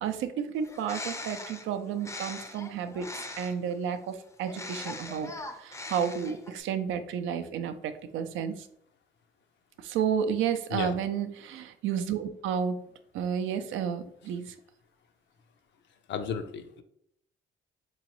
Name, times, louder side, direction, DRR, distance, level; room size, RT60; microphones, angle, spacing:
voice 1, 0.0-3.1 3.4-5.3 5.6-8.7 9.8-12.8 13.1-14.5, right 8 dB, 85° right, 9 dB, 0.4 m, -31 dB
Bird, 0.6-3.7 4.4-6.6, left 2 dB, 15° left, 0.5 m, -41 dB
voice 2, 16.1-16.8, left 6 dB, 65° left, 8 dB, 0.5 m, -33 dB
3.8 x 3.0 x 2.9 m, 0.72 s
cardioid pair, 90°, 20 cm